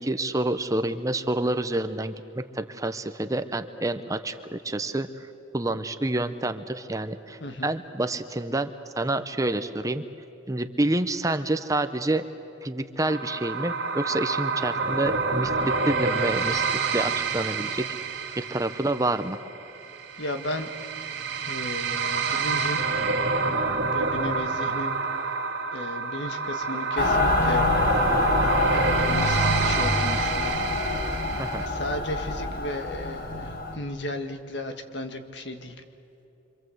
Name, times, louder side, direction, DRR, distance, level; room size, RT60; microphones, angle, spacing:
voice 1, 0.0-5.3 5.5-8.7 9.0-10.0 10.5-12.2 12.6-17.9 18.4-19.4 31.4-31.6, right 2 dB, 20° right, 9 dB, 0.8 m, -28 dB
voice 2, 7.4-7.7 20.2-20.7 21.4-22.8 23.9-24.9 25.7-27.6 28.6-30.6 31.6-35.7, left 1 dB, 65° left, 6 dB, 1.8 m, -34 dB
sound 1, 13.0-31.7, right 4 dB, 65° right, 2.5 m, -28 dB
Mechanical fan, 27.0-33.8, left 2 dB, 50° left, 1.7 m, -26 dB
26.5 x 26.0 x 7.9 m, 2.9 s
head